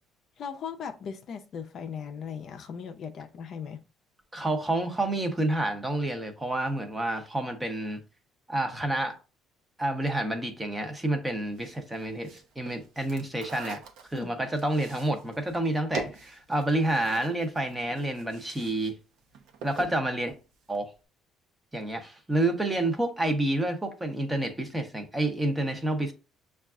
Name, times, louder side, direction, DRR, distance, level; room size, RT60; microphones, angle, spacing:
voice 1, 0.4-3.8 14.1-14.3, left 7 dB, 50° left, 0.5 m, -38 dB
voice 2, 4.3-8.0 8.5-9.2 9.8-13.8 14.1-18.9 19.6-20.3 20.7-20.9 21.7-26.1, right 1 dB, 10° right, 0.7 m, -29 dB
sound 1, 11.5-18.9 19.2-20.0, right 5 dB, 80° right, 0.7 m, -43 dB
6.3 x 2.3 x 2.4 m
cardioid pair, 135°, 0 cm